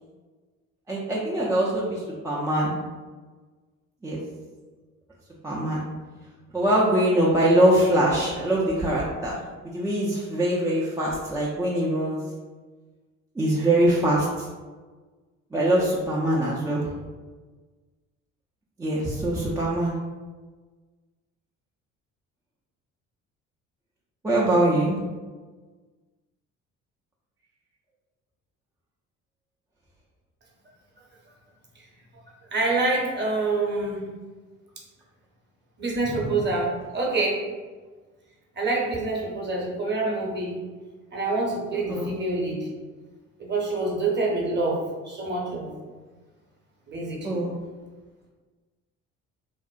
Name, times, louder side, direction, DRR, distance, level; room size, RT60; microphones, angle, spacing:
voice 1, 0.9-2.7 4.0-4.2 5.4-5.8 6.5-9.4 9.7-12.2 13.4-14.3 15.5-16.9 18.8-20.0 24.2-25.0 41.9-42.1 47.2-47.5, right 1 dB, 10° right, -6 dB, 0.3 m, -23 dB
voice 2, 32.5-34.0 35.8-37.4 38.6-40.6 41.1-42.7 43.4-45.7 46.9-47.4, right 2 dB, 30° right, -2 dB, 0.8 m, -26 dB
2.6 x 2.0 x 2.4 m, 1.4 s
hypercardioid pair, 50°, 38 cm